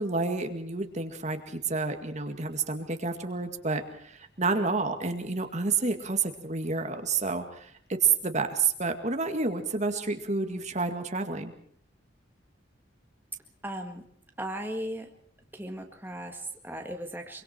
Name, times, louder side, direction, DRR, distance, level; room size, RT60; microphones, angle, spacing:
voice 1, 0.0-11.5, right 4 dB, 40° right, 6 dB, 2.1 m, -29 dB
voice 2, 13.6-14.0 14.4-15.1 15.5-17.4, right 1 dB, 10° right, 3 dB, 1.9 m, -37 dB
25.5 x 24.0 x 4.6 m, 0.62 s
head